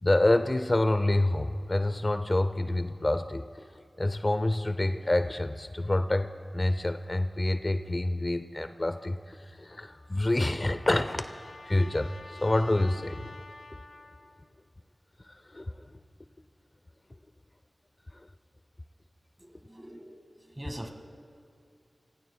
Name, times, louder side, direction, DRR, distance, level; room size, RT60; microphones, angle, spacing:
voice 1, 0.0-3.4 4.0-13.4 15.5-15.9, left 1 dB, 35° left, 10 dB, 0.6 m, -27 dB
Trumpet, 9.7-14.5, left 2 dB, 75° left, 1.5 m, -50 dB
voice 2, 19.4-20.9, right 1 dB, 20° right, 4 dB, 1.9 m, -43 dB
28.0 x 19.5 x 2.3 m, 2.5 s
cardioid pair, 45°, 0 cm